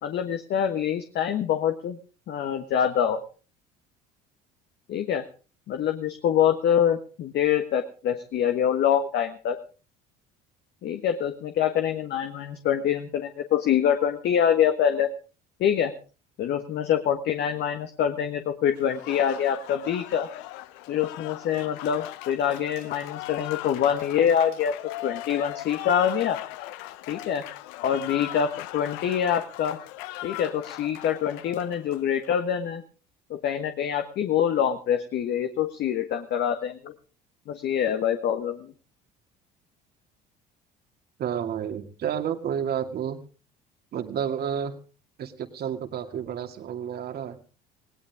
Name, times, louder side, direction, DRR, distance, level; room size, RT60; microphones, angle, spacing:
voice 1, 0.0-2.0 2.3-3.2 4.9-5.2 5.7-9.6 10.8-15.1 15.6-15.9 16.4-20.3 20.9-24.7 25.0-26.4 27.1-27.4 27.8-29.8 30.2-32.8 33.3-36.9 37.5-38.7, left 9 dB, 60° left, 6 dB, 1.5 m, -25 dB
Applause, 18.8-32.4, left 16 dB, 80° left, 0.8 m, -39 dB
voice 2, 41.2-43.2 43.9-44.8 45.2-47.4, right 8 dB, 55° right, 7 dB, 2.4 m, -30 dB
19.0 x 17.0 x 3.6 m, 0.36 s
supercardioid pair, 85°, 20 cm